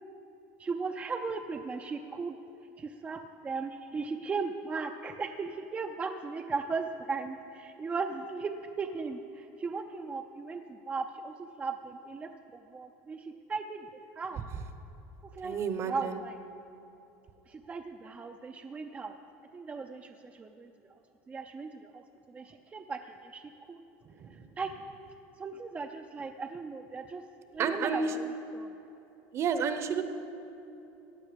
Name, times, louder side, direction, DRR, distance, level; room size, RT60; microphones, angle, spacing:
voice 1, 0.6-2.4 2.8-13.9 14.2-14.4 15.2-15.6 15.8-16.4 17.5-19.2 19.5-21.0 21.3-23.8 24.3-24.7 25.4-27.2 27.5-28.2 28.5-28.7, right 4 dB, 20° right, 5 dB, 0.5 m, -37 dB
voice 2, 15.4-16.2 24.0-24.4 27.6-28.1 29.3-30.0, right 6 dB, 40° right, 9 dB, 0.9 m, -31 dB
16.0 x 9.9 x 5.2 m, 3.0 s
supercardioid pair, 125°, 7 cm